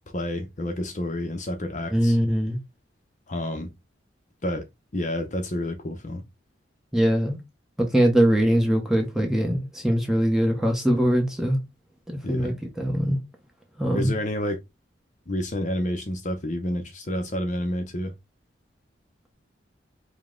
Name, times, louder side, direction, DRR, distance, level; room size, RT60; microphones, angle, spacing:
voice 1, 0.1-2.2 3.3-3.7 4.4-4.7 4.9-6.2 12.2-12.5 13.9-14.6 15.3-18.1, left 1 dB, 40° left, 0.7 m, -29 dB
voice 2, 1.9-2.6 6.9-7.4 7.8-11.6 12.3-13.2 13.8-14.1, equal, ahead, 0.8 m, -22 dB
5.1 x 2.2 x 3.7 m
head